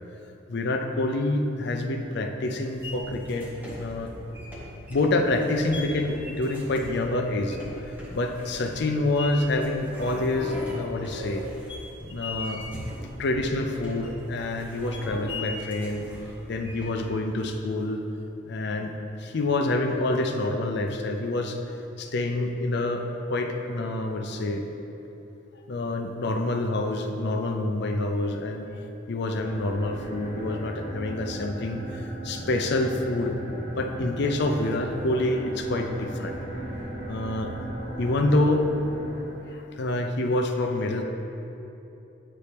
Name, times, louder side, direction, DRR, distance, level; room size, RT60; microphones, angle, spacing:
voice 1, 0.5-3.5 3.8-4.1 4.9-11.4 12.1-12.6 13.2-16.0 16.5-18.0 18.4-18.9 19.2-21.6 22.0-24.6 25.7-28.7 29.1-33.3 33.8-36.4 37.1-37.5 38.0-38.7 39.5-41.0, left 2 dB, 60° left, 4 dB, 0.5 m, -27 dB
sound 1, 2.7-17.1, left 1 dB, 10° right, 1.2 m, -39 dB
sound 2, 29.2-39.7, right 1 dB, 45° right, 1.5 m, -37 dB
9.8 x 4.2 x 3.4 m, 2.9 s
head